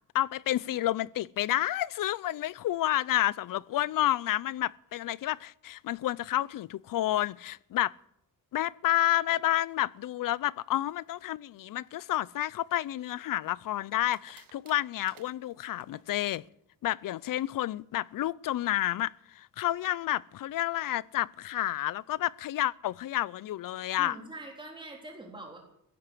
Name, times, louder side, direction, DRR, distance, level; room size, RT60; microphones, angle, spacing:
voice 1, 0.1-7.9 8.5-16.4 16.8-24.2, left 14 dB, 70° left, 0.5 m, -30 dB
sound 1, 12.6-13.5 14.1-16.1, right 9 dB, 75° right, 1.4 m, -58 dB
voice 2, 24.0-25.6, right 2 dB, 15° right, 3.8 m, -43 dB
16.0 x 10.5 x 8.4 m
wide cardioid pair, 165°, 34 cm